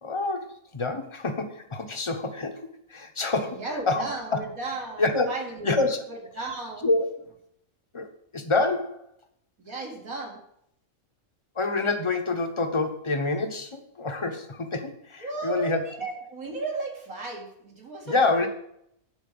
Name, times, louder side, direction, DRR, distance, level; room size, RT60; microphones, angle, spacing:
voice 1, 0.0-4.4 5.0-5.3 5.6-6.0 6.8-7.1 7.9-8.1 8.3-9.1 11.5-15.8 18.1-18.5, left 3 dB, 25° left, 6 dB, 1.0 m, -27 dB
voice 2, 3.5-6.9 9.6-10.4 15.2-18.5, right 3 dB, 75° right, 0 dB, 2.9 m, -35 dB
10.5 x 4.8 x 7.8 m, 0.73 s
omnidirectional pair, 1.5 m